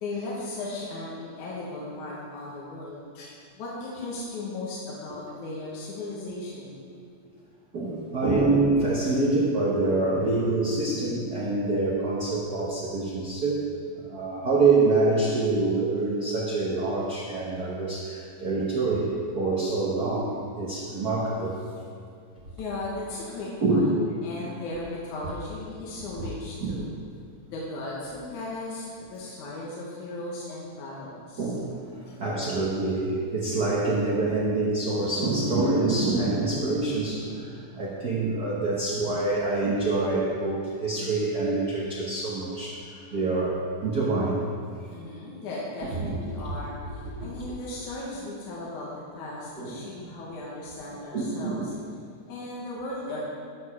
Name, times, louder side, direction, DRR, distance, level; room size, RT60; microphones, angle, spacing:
voice 1, 0.0-6.8 20.9-21.2 22.6-24.0 24.2-26.9 27.4-31.5 44.9-51.8 52.3-53.2, left 2 dB, 80° left, -6 dB, 2.7 m, -37 dB
voice 2, 7.7-13.7 14.0-21.6 23.6-24.0 25.2-25.3 26.2-26.3 26.6-26.8 31.4-44.5 47.0-47.3 49.6-49.8 51.1-51.7, right 3 dB, 70° right, -5 dB, 0.9 m, -26 dB
13.0 x 4.8 x 5.6 m, 2.3 s
omnidirectional pair, 3.4 m